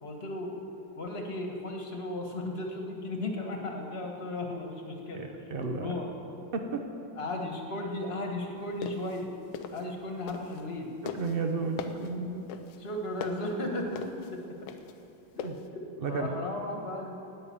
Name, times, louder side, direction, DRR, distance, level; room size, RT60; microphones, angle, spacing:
voice 1, 0.0-0.6 1.0-5.2 5.8-6.1 7.2-9.3 9.7-10.9 12.8-14.0 14.3-14.4 15.3-15.4 15.7-17.1, left 1 dB, 35° left, 2 dB, 1.4 m, -35 dB
voice 2, 5.1-6.0 6.5-6.8 11.1-12.4 15.4-15.5 16.0-16.3, right 4 dB, 70° right, 5 dB, 0.5 m, -32 dB
sound 1, 8.6-10.7 11.1-15.7, left 7 dB, 90° left, 1.5 m, -41 dB
10.5 x 8.9 x 8.5 m, 2.8 s
omnidirectional pair, 2.2 m